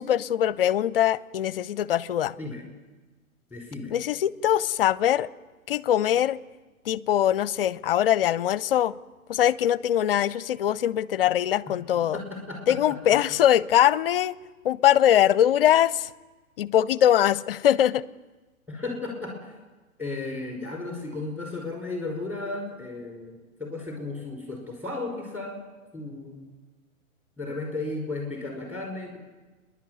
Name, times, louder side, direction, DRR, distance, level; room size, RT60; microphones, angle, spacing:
voice 1, 0.0-2.3 3.9-5.3 5.7-6.4 6.9-8.9 9.3-12.2 12.7-14.4 14.6-16.1 16.6-18.0, left 11 dB, 45° left, 21 dB, 0.6 m, -22 dB
voice 2, 3.5-3.9 12.1-13.0 18.7-19.5 20.0-25.6 25.9-26.5 27.4-29.2, left 2 dB, 5° right, 1 dB, 5.2 m, -34 dB
29.5 x 11.0 x 9.5 m, 1.3 s
hypercardioid pair, 130°, 42 cm